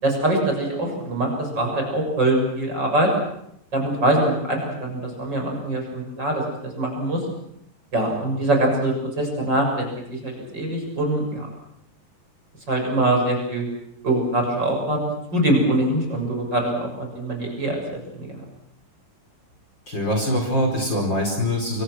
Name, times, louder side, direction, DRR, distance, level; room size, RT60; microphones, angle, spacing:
voice 1, 0.0-3.1 3.7-7.2 7.9-9.9 10.1-11.5 12.7-13.6 14.0-15.1 15.3-18.4, right 1 dB, 30° right, 2 dB, 7.4 m, -23 dB
voice 2, 19.9-21.8, equal, 30° left, 2 dB, 5.2 m, -23 dB
28.5 x 25.0 x 6.2 m, 0.75 s
omnidirectional pair, 3.9 m